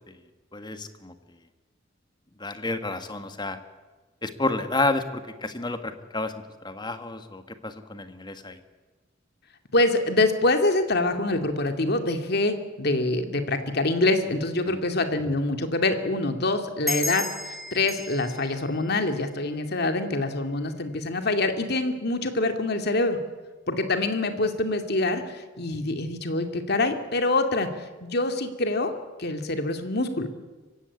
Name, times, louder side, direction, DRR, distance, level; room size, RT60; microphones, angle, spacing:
voice 1, 0.5-1.1 2.4-3.6 4.2-6.3 6.6-8.6 14.6-14.8, left 2 dB, 25° left, 9 dB, 1.7 m, -30 dB
voice 2, 9.7-17.2 17.7-23.2 23.7-28.9 29.2-30.3, left 2 dB, 55° left, 7 dB, 2.4 m, -25 dB
sound 1, 16.9-20.0, left 1 dB, ahead, 3.0 m, -34 dB
25.0 x 16.0 x 9.8 m, 1.3 s
head